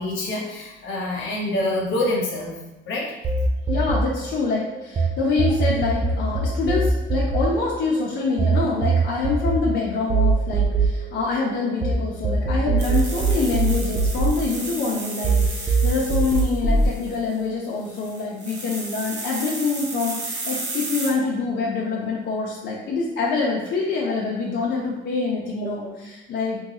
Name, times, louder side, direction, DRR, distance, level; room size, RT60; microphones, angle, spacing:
voice 1, 0.0-2.5 2.8-3.1 25.6-25.7, left 1 dB, 80° left, -3 dB, 1.0 m, -26 dB
sound 1, 3.2-5.1 5.4-11.9 12.2-14.9 15.2-16.9, right 3 dB, 25° right, 0.4 m, -22 dB
voice 2, 3.7-26.6, left 4 dB, 60° left, -5 dB, 0.7 m, -25 dB
sound 2, 12.8-17.3 17.8-21.1, right 2 dB, 60° right, 1.0 m, -33 dB
3.6 x 2.3 x 2.9 m, 1.0 s
cardioid pair, 90°, 20 cm